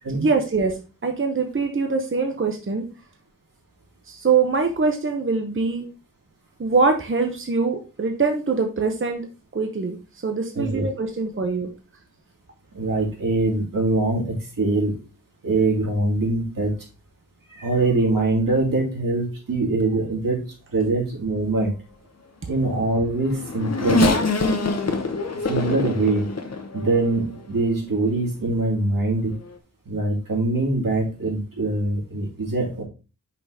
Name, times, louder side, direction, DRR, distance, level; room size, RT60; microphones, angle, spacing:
voice 1, 0.2-2.8 4.1-5.8 6.6-9.3 9.5-10.0 10.2-11.7, right 4 dB, 40° right, 4 dB, 0.9 m, -23 dB
voice 2, 10.5-10.9 12.7-15.0 15.4-16.7 17.5-20.5 20.7-21.7 22.5-24.1 25.4-26.3 26.7-29.3 29.9-32.8, right 2 dB, 85° right, -2 dB, 2.7 m, -23 dB
Race car auto racing / Accelerating revving vroom, 22.8-27.4 28.1-28.2 29.3-29.5, left 2 dB, 50° left, 1.0 m, -24 dB
5.8 x 4.0 x 4.7 m, 0.32 s
wide cardioid pair, 95°, 32 cm